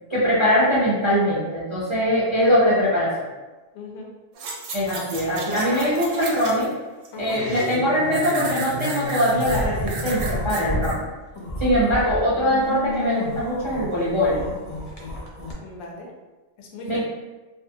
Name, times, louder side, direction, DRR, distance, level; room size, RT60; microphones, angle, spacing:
voice 1, 0.1-3.3 4.7-6.7 7.2-11.0 11.6-14.4 16.9-17.0, equal, 45° right, -9 dB, 0.4 m, -22 dB
voice 2, 3.7-4.1 7.1-7.4 11.6-11.8 15.6-16.1 16.6-17.0, left 3 dB, 85° left, 0 dB, 1.0 m, -38 dB
sound 1, 4.3-6.7 7.0-7.8 8.1-11.0 11.4-11.5, right 3 dB, 70° right, 0.9 m, -33 dB
sound 2, 7.3-10.8, equal, 25° left, 0.7 m, -33 dB
sound 3, 9.3-10.9 11.3-15.5, left 1 dB, 65° left, 0.3 m, -31 dB
2.6 x 2.4 x 2.6 m, 1.2 s
omnidirectional pair, 1.4 m